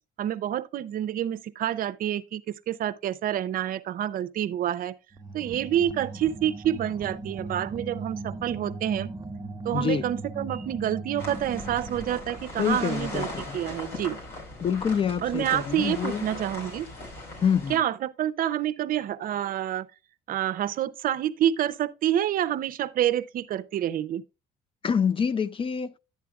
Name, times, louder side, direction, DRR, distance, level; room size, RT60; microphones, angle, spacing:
voice 1, 0.2-4.9 5.3-9.1 9.6-14.2 15.2-16.9 17.7-19.9 20.3-24.2, right 11 dB, 55° right, 0.6 m, -28 dB
sound 1, 5.1-12.5, right 2 dB, 20° right, 0.9 m, -38 dB
voice 2, 9.7-10.1 12.6-13.6 14.6-16.2 17.4-17.8 24.8-25.9, left 7 dB, 30° left, 0.5 m, -26 dB
sound 2, 11.2-17.8, left 2 dB, 85° left, 4.6 m, -38 dB
11.0 x 8.3 x 2.4 m
cardioid pair, 110°, 17 cm